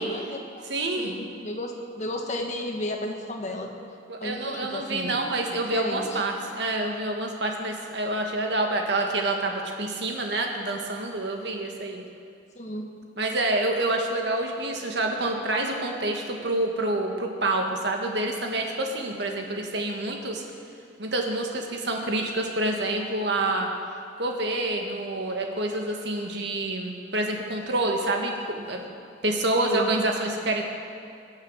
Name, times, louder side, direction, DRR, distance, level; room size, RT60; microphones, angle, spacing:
voice 1, 0.0-0.7 1.0-3.7 4.2-5.2 5.7-6.2 12.5-12.9 29.6-29.9, left 1 dB, 35° left, 2 dB, 1.4 m, -33 dB
voice 2, 0.7-1.2 4.1-12.0 13.2-20.4 21.0-23.7 24.2-28.8 29.2-30.7, right 2 dB, 60° right, 2 dB, 1.7 m, -27 dB
21.5 x 7.4 x 6.4 m, 2.4 s
head